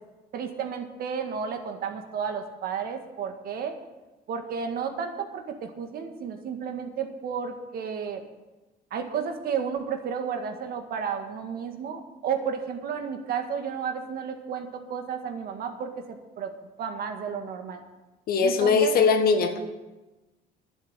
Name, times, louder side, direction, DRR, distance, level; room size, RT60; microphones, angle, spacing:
voice 1, 0.3-3.8 4.3-8.2 8.9-16.5 16.8-17.8 18.4-18.9, right 7 dB, 65° right, 5 dB, 1.8 m, -32 dB
voice 2, 18.3-19.6, left 5 dB, 60° left, 6 dB, 1.7 m, -21 dB
11.5 x 7.7 x 9.0 m, 1.1 s
cardioid pair, 110°, 17 cm